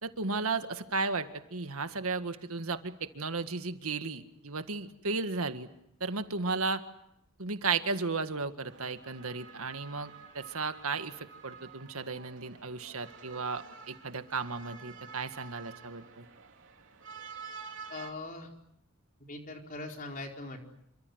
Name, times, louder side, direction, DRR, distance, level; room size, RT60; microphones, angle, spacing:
voice 1, 0.0-5.7 6.0-6.8 7.4-16.3, right 4 dB, 80° right, 9 dB, 1.8 m, -34 dB
sound 1, 8.6-18.1, right 5 dB, 60° right, 3.7 m, -49 dB
voice 2, 17.9-18.5 19.3-20.6, left 2 dB, 40° left, 2 dB, 4.5 m, -41 dB
28.5 x 25.0 x 8.0 m, 0.78 s
head